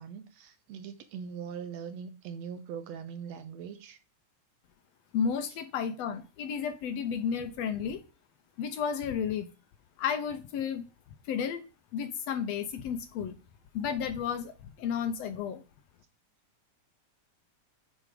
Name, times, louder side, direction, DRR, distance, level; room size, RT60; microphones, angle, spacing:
voice 1, 0.0-4.0, right 7 dB, 70° right, 1.8 m, -41 dB
voice 2, 5.1-8.0 8.6-9.5 10.0-10.8 11.3-11.6 11.9-13.4 13.7-15.6, left 7 dB, 75° left, 1.7 m, -32 dB
9.8 x 5.1 x 5.0 m
omnidirectional pair, 3.4 m